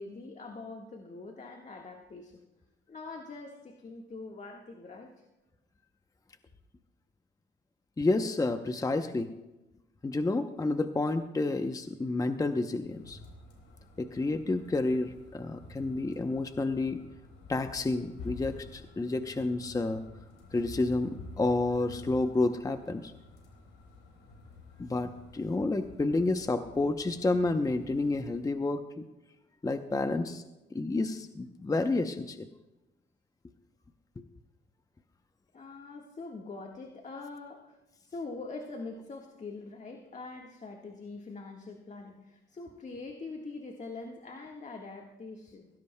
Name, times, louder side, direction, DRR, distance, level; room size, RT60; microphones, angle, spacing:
voice 1, 0.0-2.4 2.9-5.2 35.5-45.7, left 3 dB, 35° left, 2 dB, 1.5 m, -43 dB
voice 2, 8.0-9.3 10.0-13.2 14.0-17.0 17.5-20.0 20.5-23.1 24.8-29.0 29.6-30.4 30.7-32.5 34.2-34.3, left 2 dB, 15° left, 8 dB, 0.7 m, -30 dB
sound 1, 12.9-28.4, left 3 dB, 85° left, 3.9 m, -50 dB
17.5 x 16.5 x 2.2 m, 1.0 s
cardioid pair, 90°, 20 cm